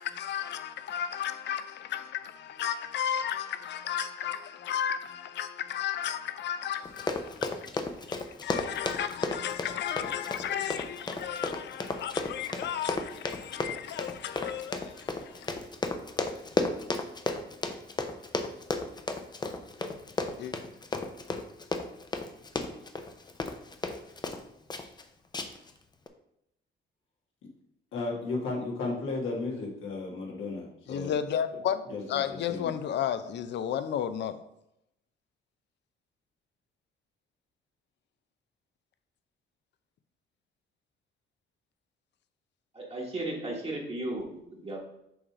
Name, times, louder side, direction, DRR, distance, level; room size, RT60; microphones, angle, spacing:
voice 1, 0.0-15.5 20.4-20.5 30.9-31.8 32.1-34.4, left 9 dB, 60° left, 0.5 m, -33 dB
Run, 6.8-24.4 24.7-25.0 25.3-25.7 26.1-26.2, left 3 dB, 20° left, 0.6 m, -33 dB
voice 2, 27.9-31.2 31.9-32.7, left 3 dB, 85° left, 1.7 m, -34 dB
voice 3, 42.7-44.8, right 1 dB, 30° right, 1.3 m, -35 dB
6.2 x 3.2 x 5.0 m
cardioid pair, 90°, 20 cm